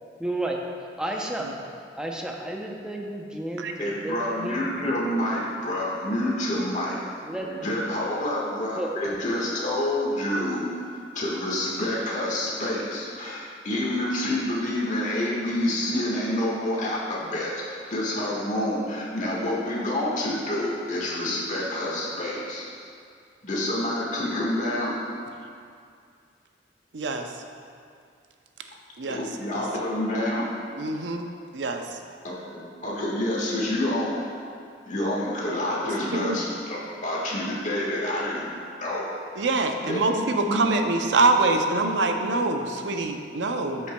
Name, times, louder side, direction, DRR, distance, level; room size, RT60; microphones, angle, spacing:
voice 1, 0.2-0.6 1.0-1.5 2.0-4.9 7.2-7.7 8.8-9.0, right 1 dB, 5° right, 0 dB, 0.6 m, -32 dB
voice 2, 3.8-7.0 7.4-10.6 11.1-22.6 23.4-24.9 29.0-30.5 32.2-34.2 34.8-39.1 39.3-39.5 39.8-40.6, left 1 dB, 45° left, -5 dB, 1.5 m, -28 dB
voice 3, 26.9-27.3 29.0-29.2 30.8-31.3 31.5-31.8 36.1-36.4 39.4-43.9, right 3 dB, 85° right, 5 dB, 0.6 m, -24 dB
13.0 x 5.6 x 2.3 m, 2.3 s
head